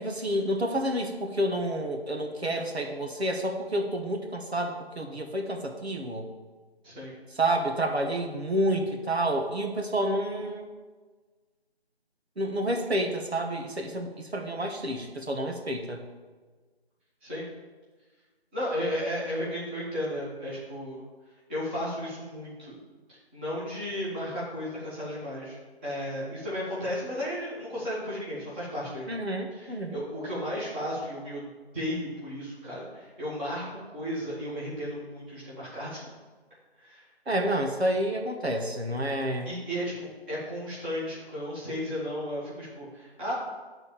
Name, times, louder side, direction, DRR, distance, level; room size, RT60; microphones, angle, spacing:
voice 1, 0.0-6.3 7.3-10.7 12.4-16.0 29.1-30.0 37.3-39.5, right 1 dB, 80° right, 2 dB, 1.6 m, -29 dB
voice 2, 6.8-7.1 17.2-17.4 18.5-21.0 21.5-22.8 23.3-29.2 29.5-31.5 31.7-36.0 36.8-37.0 39.4-43.3, equal, 10° right, -10 dB, 1.6 m, -34 dB
9.6 x 4.0 x 7.2 m, 1.3 s
figure-of-eight pair, 160°, 32 cm